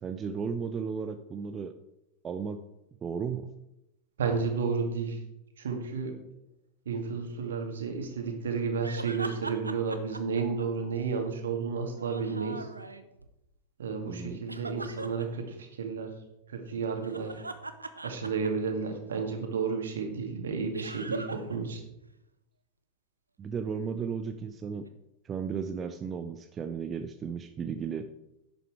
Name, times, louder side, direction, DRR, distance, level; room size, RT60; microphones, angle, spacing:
voice 1, 0.0-1.7 2.2-2.6 3.0-3.5 14.1-14.4 23.4-24.9 25.2-28.1, right 6 dB, 25° right, 8 dB, 0.6 m, -34 dB
voice 2, 4.2-5.2 5.6-6.1 6.9-12.7 13.8-16.1 16.5-17.3 18.0-21.8, right 5 dB, 65° right, 4 dB, 2.1 m, -32 dB
sound 1, 8.8-11.2 11.9-13.3 14.5-15.2 16.9-18.9 20.7-21.6 21.8-21.9 24.8-24.9, right 2 dB, 80° right, 0.8 m, -40 dB
11.0 x 7.8 x 4.8 m, 0.88 s
figure-of-eight pair, 90°, 0 cm